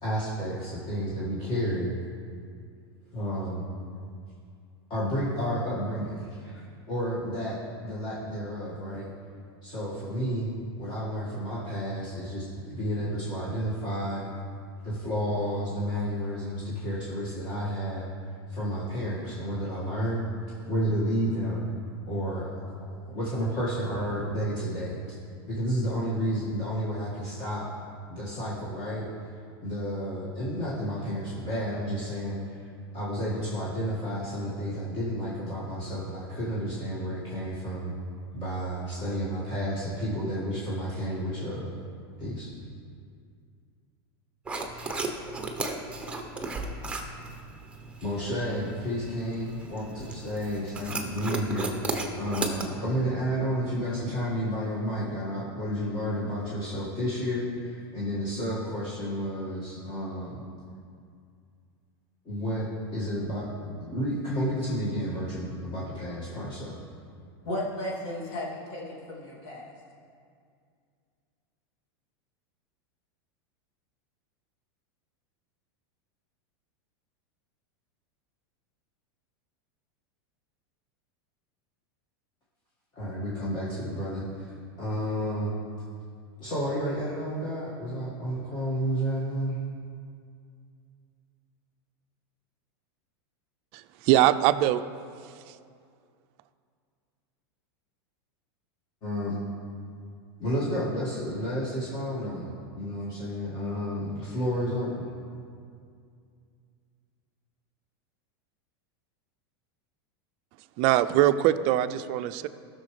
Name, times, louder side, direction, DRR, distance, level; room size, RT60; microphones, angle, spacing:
voice 1, 0.0-1.9 3.1-3.7 4.9-9.1 9.6-14.3 14.8-18.1 18.5-20.3 20.7-21.7 22.1-25.0 25.5-27.7 28.1-29.1 29.6-32.7 32.9-37.9 38.3-41.7 42.2-42.5 48.0-60.4 62.3-66.7 82.9-84.5 84.8-85.6 86.4-89.6 99.0-99.4 100.4-105.1, equal, 30° left, -8 dB, 1.9 m, -31 dB
sound 1, 44.5-52.7, right 2 dB, 10° right, 0.8 m, -35 dB
voice 2, 67.4-69.7, left 1 dB, 55° left, -4 dB, 2.6 m, -34 dB
voice 3, 93.7-94.8 95.5-95.6 110.8-112.5, right 13 dB, 45° right, 12 dB, 0.4 m, -22 dB
15.0 x 6.4 x 3.3 m, 2.3 s
supercardioid pair, 140°, 14 cm